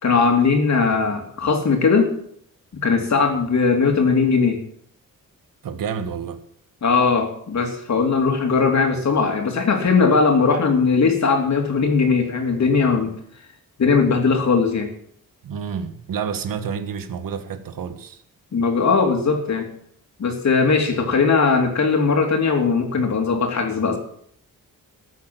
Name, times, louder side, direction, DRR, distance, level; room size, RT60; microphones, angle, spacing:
voice 1, 0.0-2.1 2.7-4.6 6.8-13.1 13.8-14.9 18.5-19.6 20.2-24.0, left 4 dB, 55° left, 3.2 m, -19 dB
voice 2, 5.6-6.4 15.4-18.2, right 7 dB, 75° right, 1.5 m, -29 dB
14.0 x 8.4 x 7.8 m
cardioid pair, 110°, 34 cm